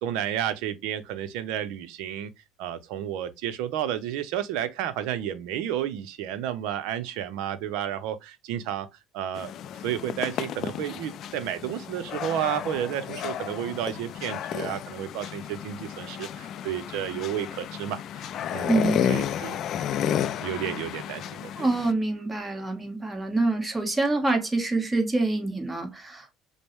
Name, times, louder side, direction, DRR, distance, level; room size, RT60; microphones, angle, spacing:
voice 1, 0.0-2.3 2.6-8.9 9.1-9.5 9.8-18.7 19.1-19.6 20.4-21.5, right 10 dB, 75° right, 0.6 m, -31 dB
sound 1, 9.3-21.9, left 10 dB, 55° left, 0.3 m, -32 dB
voice 2, 18.7-19.1 21.6-26.3, right 2 dB, 15° right, 1.2 m, -26 dB
5.1 x 2.1 x 3.1 m
supercardioid pair, 90°, 0 cm